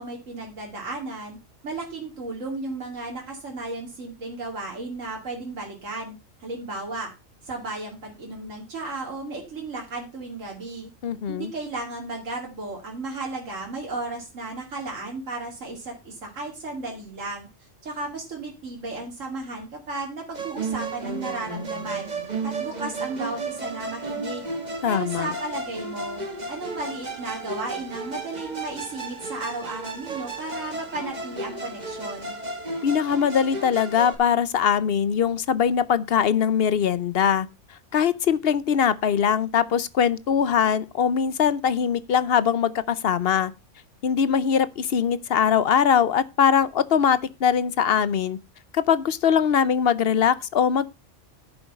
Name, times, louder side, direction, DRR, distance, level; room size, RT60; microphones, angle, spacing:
voice 1, 0.0-1.4 1.6-6.1 6.4-7.1 7.4-10.9 11.3-22.1 22.4-24.5 24.9-26.2 26.5-32.4, right 2 dB, 75° right, 2.8 m, -34 dB
voice 2, 11.0-11.5 24.8-25.3 32.8-37.5 37.9-43.5 44.0-48.4 48.7-50.9, left 7 dB, 55° left, 0.9 m, -22 dB
Musical instrument, 20.3-34.2, right 3 dB, 35° right, 2.0 m, -33 dB
10.5 x 7.1 x 5.4 m
omnidirectional pair, 1.3 m